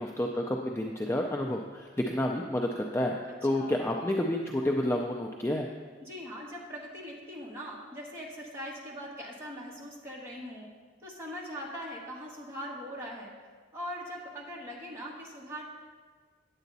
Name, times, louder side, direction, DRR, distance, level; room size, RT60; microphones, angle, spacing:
voice 1, 0.0-5.7, left 1 dB, 15° left, 1 dB, 0.4 m, -30 dB
voice 2, 6.0-10.7 11.0-13.3 13.7-15.6, equal, 15° right, -4 dB, 1.4 m, -41 dB
8.9 x 8.1 x 4.0 m, 1.5 s
head